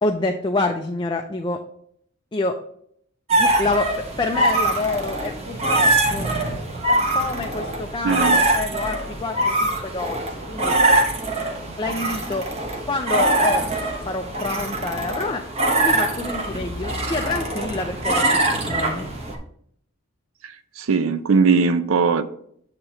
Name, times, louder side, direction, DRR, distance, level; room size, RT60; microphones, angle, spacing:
voice 1, 0.0-1.6 2.3-2.6 3.4-3.9 4.2-6.3 7.1-10.7 11.8-12.5 12.9-13.7 14.1-15.4 15.8-18.2 18.5-19.1, left 3 dB, 20° left, 0.4 m, -27 dB
sound 1, 3.3-19.4, right 2 dB, 30° right, 1.0 m, -23 dB
voice 2, 8.0-8.4 11.6-11.7 20.8-22.2, right 5 dB, 75° right, 0.5 m, -19 dB
7.8 x 2.9 x 5.5 m
head